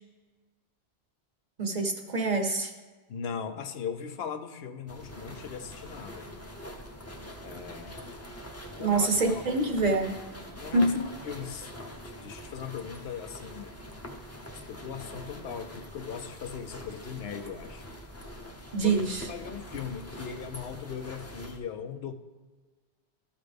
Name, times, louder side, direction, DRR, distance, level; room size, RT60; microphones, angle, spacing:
voice 1, 1.6-2.7 8.8-10.2 10.7-11.0 18.7-19.3, right 3 dB, 45° right, 4 dB, 0.9 m, -26 dB
voice 2, 3.1-6.3 7.4-8.1 8.8-9.4 10.6-11.7 12.2-13.8 14.7-17.8 18.8-19.0 19.3-22.1, left 7 dB, 70° left, 8 dB, 0.8 m, -39 dB
sound 1, 4.9-21.6, equal, 15° left, 0.7 m, -44 dB
13.0 x 5.8 x 3.4 m, 1.3 s
omnidirectional pair, 1.1 m